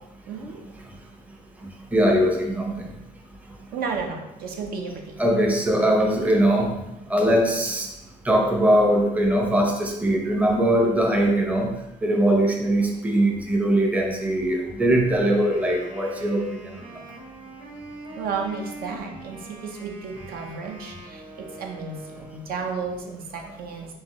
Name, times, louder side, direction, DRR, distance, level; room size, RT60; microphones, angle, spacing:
voice 1, 0.3-0.6 3.7-5.2 18.1-23.9, right 5 dB, 60° right, 2 dB, 0.8 m, -33 dB
voice 2, 1.9-2.9 5.2-6.8 7.1-7.9 8.2-11.8 12.0-16.6, right 1 dB, 10° right, 1 dB, 0.7 m, -21 dB
Wind instrument woodwind instrument, 15.1-22.7, right 2 dB, 40° right, 1.2 m, -43 dB
4.6 x 3.7 x 3.1 m, 0.89 s
cardioid pair, 110°, 17 cm